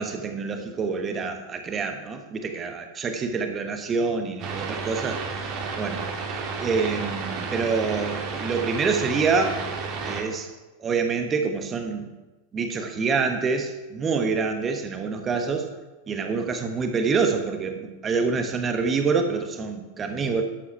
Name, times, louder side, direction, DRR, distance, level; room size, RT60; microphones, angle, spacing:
voice 1, 0.0-5.2 5.8-6.0 6.6-9.6 10.0-10.5 10.8-12.1 12.5-15.7 16.1-20.4, right 4 dB, 25° right, 6 dB, 1.2 m, -26 dB
sound 1, 4.4-10.2, right 4 dB, 40° right, 1.9 m, -32 dB
13.0 x 8.4 x 4.6 m, 1.2 s
figure-of-eight pair, 90°, 0 cm